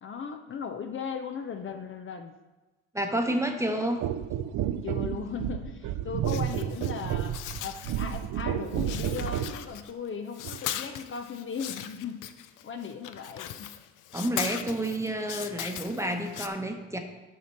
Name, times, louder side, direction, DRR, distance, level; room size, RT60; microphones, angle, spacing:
voice 1, 0.0-2.3 4.8-12.3 12.6-13.7, left 6 dB, 40° left, 6 dB, 0.6 m, -37 dB
voice 2, 2.9-4.0 14.1-17.0, right 1 dB, 10° right, 4 dB, 0.9 m, -29 dB
sound 1, 4.0-9.6 10.4-10.6, right 10 dB, 75° right, 0.5 m, -31 dB
sound 2, 6.3-8.4 8.7-10.1 10.3-16.5, left 11 dB, 90° left, 0.5 m, -39 dB
7.3 x 5.8 x 4.4 m, 1.2 s
cardioid pair, 90°, 30 cm